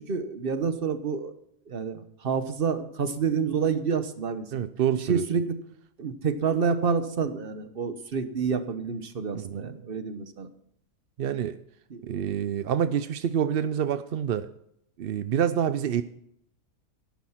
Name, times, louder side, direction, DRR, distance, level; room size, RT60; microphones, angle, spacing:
voice 1, 0.0-1.3 1.7-4.7 5.0-5.6 6.0-10.5 11.9-12.0, right 6 dB, 45° right, 11 dB, 1.1 m, -28 dB
voice 2, 4.5-5.2 9.3-9.7 11.2-11.6 12.0-14.5 15.0-16.0, right 9 dB, 60° right, 12 dB, 0.6 m, -27 dB
11.0 x 10.5 x 5.8 m, 0.74 s
omnidirectional pair, 1.5 m